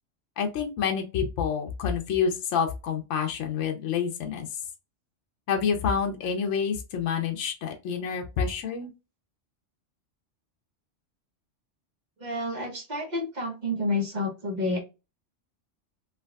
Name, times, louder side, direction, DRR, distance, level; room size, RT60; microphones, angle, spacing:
voice 1, 0.4-4.5 5.5-8.9, left 6 dB, 75° left, 4 dB, 1.0 m, -28 dB
voice 2, 12.2-14.8, left 2 dB, 40° right, 1 dB, 0.9 m, -29 dB
3.5 x 2.5 x 2.3 m, 0.27 s
omnidirectional pair, 1.3 m